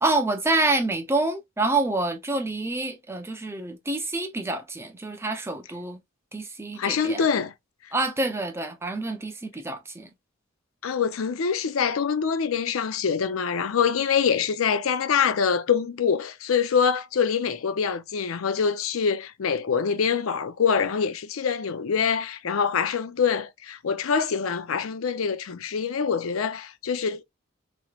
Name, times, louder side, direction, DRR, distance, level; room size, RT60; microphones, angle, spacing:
voice 1, 0.0-6.0 6.3-7.3 7.9-10.1, right 2 dB, 10° right, 0.5 m, -27 dB
voice 2, 6.8-7.5 10.8-27.2, left 6 dB, 85° left, 0.5 m, -25 dB
3.1 x 3.0 x 2.3 m
head